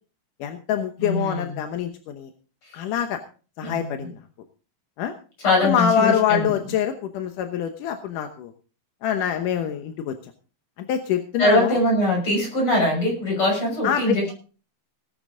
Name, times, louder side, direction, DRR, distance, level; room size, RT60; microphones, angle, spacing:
voice 1, 0.4-2.3 2.7-3.2 3.6-4.1 5.0-5.1 5.6-8.5 9.0-10.1 10.9-11.8 13.8-14.3, left 9 dB, 85° left, 6 dB, 2.6 m, -25 dB
voice 2, 1.0-1.5 3.6-4.1 5.4-6.5 11.4-14.3, left 1 dB, 40° left, 1 dB, 7.1 m, -22 dB
18.5 x 9.9 x 3.8 m, 0.37 s
omnidirectional pair, 3.6 m